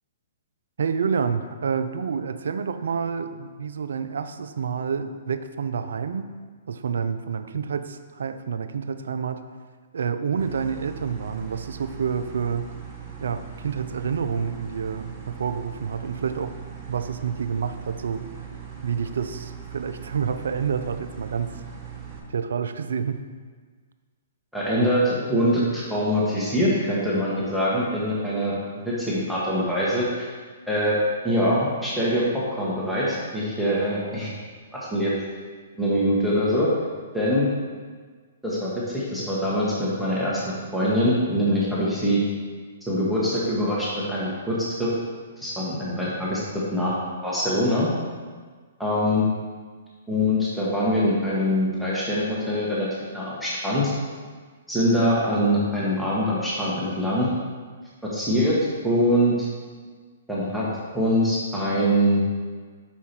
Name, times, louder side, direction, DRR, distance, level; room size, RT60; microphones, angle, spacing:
voice 1, 0.8-6.3 6.7-9.4 9.9-12.7 13.2-16.5 16.9-18.3 18.8-21.5 22.3-23.2, right 6 dB, 70° right, 10 dB, 0.4 m, -28 dB
sound 1, 10.4-22.2, right 7 dB, 25° right, 1.2 m, -40 dB
voice 2, 24.5-28.5 28.8-30.3 30.7-31.0 31.2-32.2 32.6-34.3 34.9-35.1 35.8-36.7 37.1-37.5 38.4-40.4 40.7-42.2 42.9-44.9 45.4-46.4 46.7-46.9 47.2-47.9 48.8-49.2 50.1-52.9 53.1-53.9 54.7-57.3 58.1-58.6 58.8-59.5 60.3-60.7 60.9-62.2, equal, ahead, -9 dB, 1.4 m, -23 dB
5.6 x 4.7 x 4.4 m, 1.5 s
hypercardioid pair, 125°, 0 cm